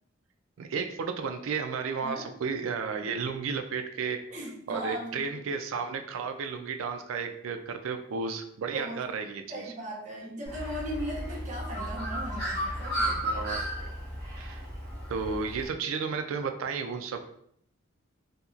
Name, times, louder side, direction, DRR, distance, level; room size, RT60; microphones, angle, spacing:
voice 1, 0.6-4.2 4.7-9.6 13.2-13.9 14.4-14.6 15.1-17.3, right 5 dB, 75° right, 6 dB, 0.3 m, -33 dB
voice 2, 4.3-5.3 8.7-9.0 9.5-13.4, equal, 35° right, -4 dB, 0.6 m, -38 dB
Bird, 10.5-15.7, equal, 15° left, 1.2 m, -34 dB
2.8 x 2.8 x 2.4 m, 0.68 s
head